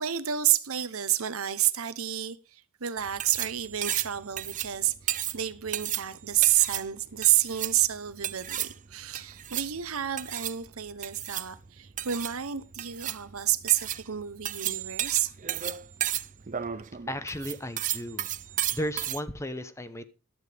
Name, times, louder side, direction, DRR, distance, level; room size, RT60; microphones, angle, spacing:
voice 1, 0.0-15.3, right 12 dB, 80° right, 1.0 m, -29 dB
sound 1, 3.0-19.2, right 12 dB, 35° right, 0.5 m, -34 dB
voice 2, 17.1-18.3 18.7-20.0, equal, 15° left, 0.9 m, -34 dB
14.5 x 12.0 x 3.5 m
head